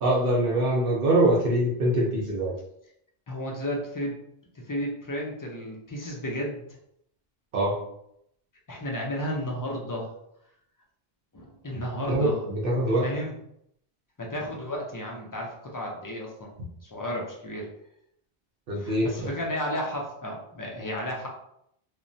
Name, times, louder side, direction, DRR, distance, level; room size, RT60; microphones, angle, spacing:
voice 1, 0.0-2.5 7.5-7.8 11.7-11.8 12.1-13.0 18.7-19.1, right 1 dB, 65° right, -4 dB, 0.8 m, -23 dB
voice 2, 3.3-4.2 4.6-6.6 8.7-10.1 11.3-12.4 13.0-13.4 14.2-16.5 16.8-17.7 18.8-21.3, equal, 35° left, -1 dB, 0.3 m, -33 dB
3.0 x 2.1 x 2.6 m, 0.75 s
omnidirectional pair, 1.0 m